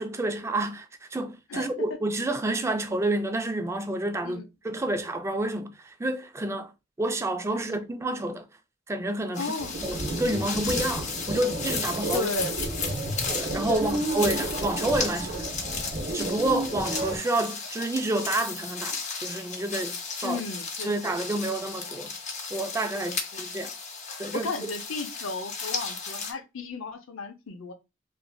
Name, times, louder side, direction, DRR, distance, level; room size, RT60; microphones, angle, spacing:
voice 1, 0.0-6.7 7.0-8.5 8.9-9.5 9.8-12.3 13.3-15.5 16.1-20.4 20.8-22.1 22.5-23.7 24.2-24.7, right 2 dB, 15° right, 0.3 m, -29 dB
sound 1, 9.3-26.3, left 4 dB, 35° left, 0.6 m, -35 dB
voice 2, 9.4-9.7 12.1-12.5 13.7-14.4 20.2-21.2 22.9-23.2 24.3-27.7, left 3 dB, 80° left, 0.6 m, -34 dB
sound 2, 9.6-17.2, right 2 dB, 55° right, 0.7 m, -32 dB
3.1 x 2.5 x 2.2 m
head